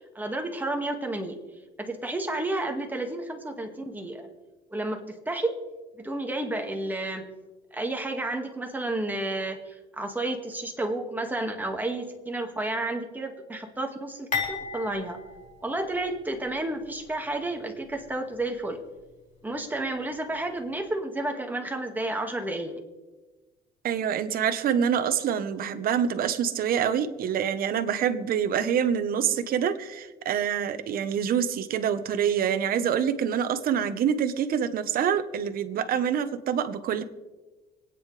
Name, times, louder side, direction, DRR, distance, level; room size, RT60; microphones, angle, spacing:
voice 1, 0.0-1.4 1.8-4.3 4.7-5.5 6.0-7.2 7.7-15.2 15.6-18.8 19.4-22.8, right 2 dB, 10° right, 3 dB, 1.9 m, -31 dB
sound 1, 14.3-16.5 16.8-17.0 17.9-18.0, left 5 dB, 45° left, 4.3 m, -35 dB
voice 2, 23.8-37.0, right 8 dB, 60° right, 11 dB, 1.1 m, -26 dB
26.0 x 9.4 x 3.3 m, 1.2 s
cardioid pair, 110°, 17 cm